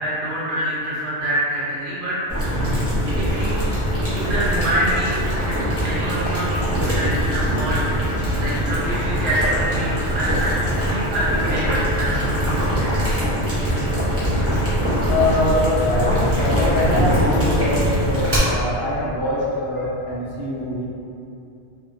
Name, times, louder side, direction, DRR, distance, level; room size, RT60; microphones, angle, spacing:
voice 1, 0.0-2.2 3.2-3.7 4.1-5.2 5.8-7.8 8.4-12.9, right 1 dB, 55° right, -7 dB, 0.7 m, -25 dB
Boiling, 2.3-18.4, equal, 15° right, 0.5 m, -22 dB
voice 2, 15.1-20.9, left 1 dB, 60° left, -7 dB, 0.6 m, -23 dB
2.7 x 2.3 x 2.5 m, 2.7 s
omnidirectional pair, 1.2 m